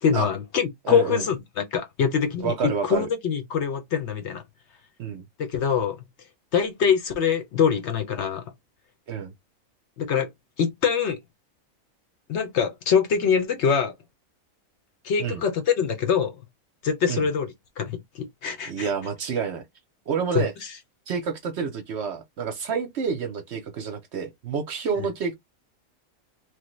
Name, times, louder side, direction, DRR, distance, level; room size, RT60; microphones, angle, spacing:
voice 1, 0.0-4.4 5.4-6.0 6.5-8.5 10.0-10.3 10.6-11.2 12.3-13.9 15.0-16.4 16.8-18.9 20.3-20.7, left 7 dB, 65° left, 0.8 m, -24 dB
voice 2, 0.8-1.3 2.4-3.1 5.0-5.2 9.1-9.3 15.2-15.4 17.1-17.3 18.7-19.6 20.1-20.5 21.1-25.3, right 6 dB, 60° right, 0.8 m, -28 dB
3.1 x 2.1 x 3.0 m
omnidirectional pair, 1.4 m